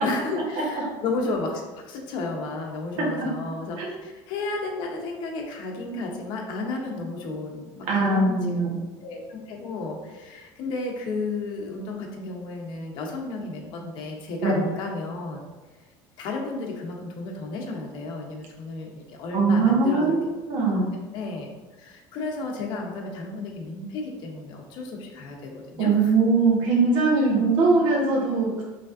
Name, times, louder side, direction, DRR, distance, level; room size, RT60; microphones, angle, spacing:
voice 1, 0.0-15.4 16.2-20.2 21.1-21.5 21.8-26.1, left 3 dB, 55° left, 0 dB, 0.9 m, -33 dB
voice 2, 7.9-8.8 14.4-14.6 19.3-20.2 20.5-20.9 25.8-28.6, right 3 dB, 60° right, -3 dB, 1.3 m, -21 dB
5.1 x 3.3 x 2.6 m, 1.2 s
cardioid pair, 155°, 10 cm